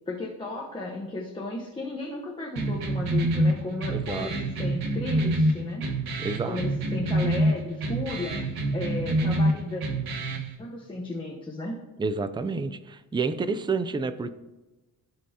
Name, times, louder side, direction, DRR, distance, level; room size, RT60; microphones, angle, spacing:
voice 1, 0.1-5.9 6.4-8.4 8.7-9.8 10.6-11.8, left 2 dB, 15° left, -2 dB, 0.9 m, -34 dB
sound 1, 2.5-10.5, right 1 dB, 75° right, 1.4 m, -26 dB
voice 2, 3.9-4.3 6.2-6.6 12.0-14.3, right 4 dB, 15° right, 12 dB, 0.3 m, -29 dB
16.0 x 5.4 x 2.8 m, 1.1 s
cardioid pair, 135°, 37 cm